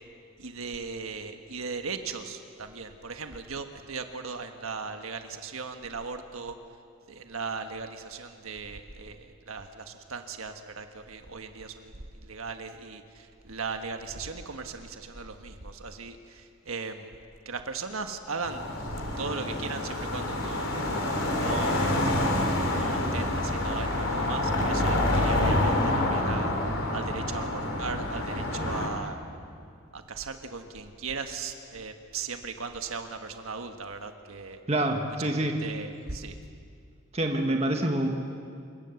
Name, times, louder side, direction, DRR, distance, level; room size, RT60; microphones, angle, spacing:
voice 1, 0.4-6.6 7.1-17.1 17.4-18.7 18.9-20.7 21.4-22.1 22.7-26.6 26.9-29.2 29.9-34.6 35.2-35.3 35.6-36.4, right 4 dB, 90° right, 6 dB, 1.5 m, -38 dB
sound 1, 18.4-28.9, left 1 dB, 80° left, 3.9 m, -27 dB
voice 2, 34.7-35.6 37.1-38.1, right 1 dB, 30° right, 3 dB, 1.5 m, -26 dB
28.5 x 17.5 x 7.1 m, 2.3 s
head